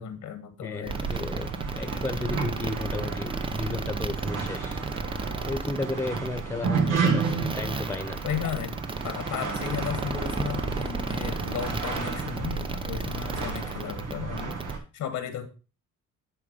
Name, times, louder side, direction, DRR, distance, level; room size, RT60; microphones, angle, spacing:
voice 1, 0.0-1.2 8.2-8.8 9.0-15.5, left 8 dB, 75° left, 9 dB, 1.4 m, -34 dB
voice 2, 0.6-1.5 1.7-4.8 5.5-8.2, left 2 dB, 10° left, 9 dB, 1.1 m, -33 dB
sound 1, 0.8-14.7, right 3 dB, 15° right, 0.6 m, -34 dB
sound 2, 0.9-14.8, right 5 dB, 90° right, 1.8 m, -32 dB
10.5 x 3.6 x 5.2 m, 0.34 s
cardioid pair, 90°, 30 cm